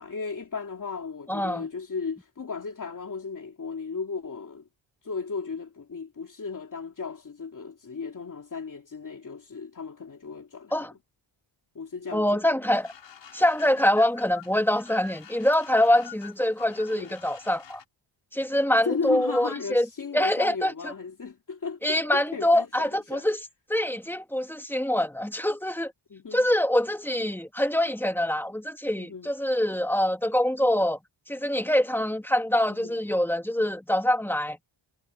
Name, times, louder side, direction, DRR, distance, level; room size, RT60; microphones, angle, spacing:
voice 1, 0.0-4.7 5.0-10.9 11.7-12.4 16.9-17.1 18.7-23.3 26.1-26.5 29.0-29.3 32.7-33.0, left 5 dB, 40° left, 2.9 m, -35 dB
voice 2, 1.3-1.6 10.7-10.9 12.1-12.9 13.3-17.8 18.3-19.9 20.1-20.9 21.8-23.4 23.7-25.9 26.3-31.0 31.3-34.6, left 1 dB, 5° left, 1.8 m, -24 dB
sound 1, 12.7-17.8, left 4 dB, 60° left, 3.3 m, -45 dB
wide cardioid pair, 140°, 48 cm